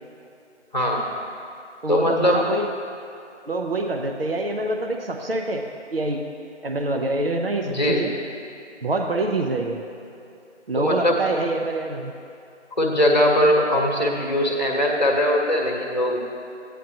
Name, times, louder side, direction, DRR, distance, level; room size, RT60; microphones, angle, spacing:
voice 1, 0.7-1.1 1.9-2.4 7.6-8.1 10.8-11.2 12.8-16.1, left 1 dB, 35° left, 0 dB, 1.2 m, -20 dB
voice 2, 1.8-2.7 3.5-5.6 5.9-6.2 6.6-8.1 8.8-9.8 10.7-12.1, right 2 dB, 55° right, 3 dB, 0.7 m, -25 dB
12.5 x 9.2 x 2.8 m, 2.7 s
figure-of-eight pair, 170°, 36 cm